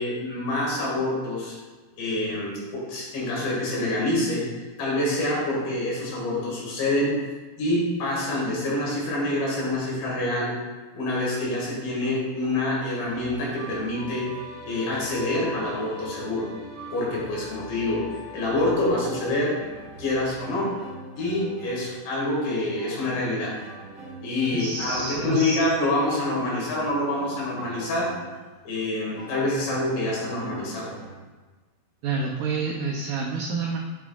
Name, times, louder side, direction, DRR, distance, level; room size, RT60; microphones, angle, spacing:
voice 1, 0.0-1.6 2.0-7.2 7.6-10.6 11.0-14.3 14.7-16.5 16.9-19.6 20.0-20.8 21.2-23.6 24.2-28.2 28.6-30.9, left 1 dB, 85° left, -5 dB, 3.9 m, -26 dB
sound 1, 13.1-31.1, right 1 dB, 75° right, 0.8 m, -42 dB
voice 2, 24.5-25.6 32.0-33.8, right 4 dB, 90° right, -1 dB, 1.8 m, -28 dB
8.3 x 5.8 x 2.3 m, 1.3 s
omnidirectional pair, 4.3 m